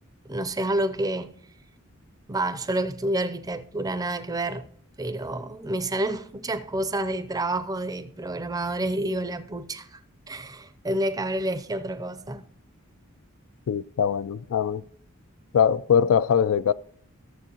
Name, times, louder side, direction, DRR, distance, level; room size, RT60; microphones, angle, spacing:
voice 1, 0.3-1.4 2.3-4.7 5.0-10.0 10.3-12.4, right 1 dB, 15° right, 0.5 m, -29 dB
voice 2, 13.7-14.8 15.5-16.7, left 7 dB, 75° left, 0.3 m, -22 dB
14.5 x 7.0 x 3.0 m
head